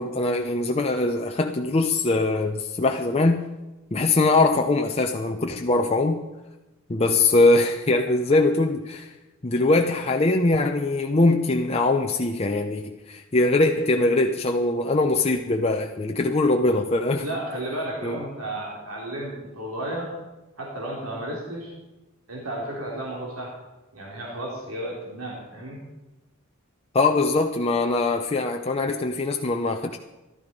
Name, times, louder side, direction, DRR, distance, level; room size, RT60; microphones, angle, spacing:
voice 1, 0.0-3.5 3.9-6.2 6.9-9.1 9.4-17.3 18.0-18.2 26.9-30.0, left 2 dB, 30° left, 3 dB, 0.6 m, -22 dB
voice 2, 17.2-20.1 20.6-21.7 22.3-23.5 23.9-25.8, right 1 dB, 85° right, -3 dB, 3.2 m, -33 dB
14.5 x 12.5 x 5.3 m, 1.1 s
head